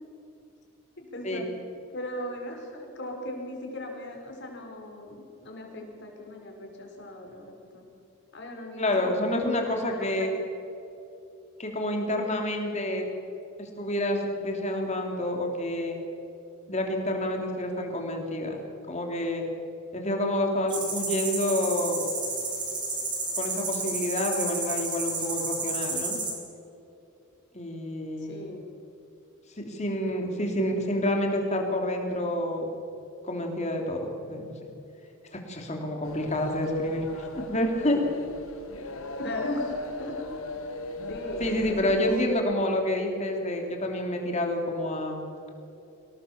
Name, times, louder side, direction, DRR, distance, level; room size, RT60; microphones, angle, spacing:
voice 1, 1.0-1.5 1.9-7.9 8.3-10.3 28.3-28.6 39.2-39.7 40.0-40.2 41.1-41.5 41.8-42.4, left 1 dB, 50° left, 2 dB, 4.8 m, -38 dB
voice 2, 8.8-10.3 11.6-13.0 13.6-16.0 16.7-18.6 18.9-19.4 19.9-22.1 23.4-26.2 27.5-28.3 29.6-32.7 33.2-34.5 35.3-38.0 41.4-45.3, left 1 dB, 30° left, 2 dB, 3.3 m, -28 dB
sound 1, 20.7-26.3, right 3 dB, 20° right, 4.1 m, -31 dB
sound 2, 36.0-42.2, left 2 dB, 75° left, 2.0 m, -37 dB
24.5 x 18.0 x 7.3 m, 2.8 s
head